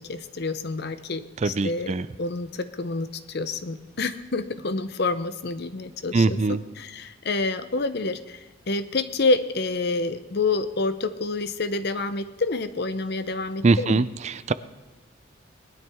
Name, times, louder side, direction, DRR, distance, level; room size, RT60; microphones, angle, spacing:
voice 1, 0.0-1.9 2.2-14.0, left 3 dB, 55° left, 12 dB, 0.7 m, -28 dB
voice 2, 1.4-2.1 6.1-6.6 13.6-14.5, right 3 dB, 35° right, 15 dB, 0.4 m, -22 dB
19.5 x 12.0 x 3.6 m, 1.2 s
head